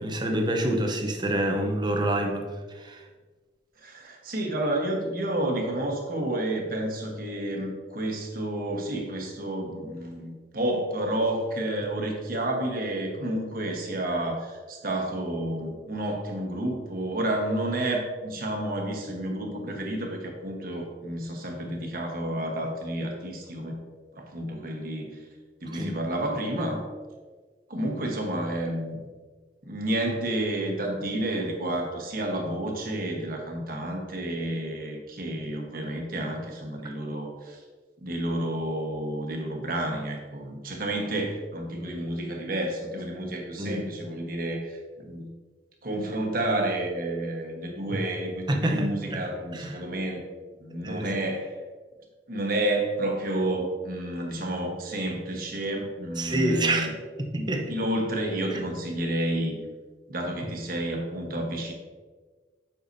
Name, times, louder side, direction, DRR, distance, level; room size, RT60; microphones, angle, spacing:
voice 1, 0.0-2.5 2.7-3.0 25.7-25.9 43.6-43.9 47.9-48.0 48.5-49.2 49.5-49.8 50.8-51.1 56.2-56.9 57.2-57.7, right 1 dB, 25° right, 3 dB, 0.7 m, -27 dB
voice 2, 3.8-23.8 24.1-25.2 25.6-26.8 27.7-29.0 29.6-37.6 38.0-45.3 45.8-50.3 50.6-51.5 52.3-56.9 57.3-59.6 60.1-61.7, right 1 dB, 50° right, 1 dB, 1.2 m, -30 dB
8.2 x 5.8 x 2.7 m, 1.4 s
head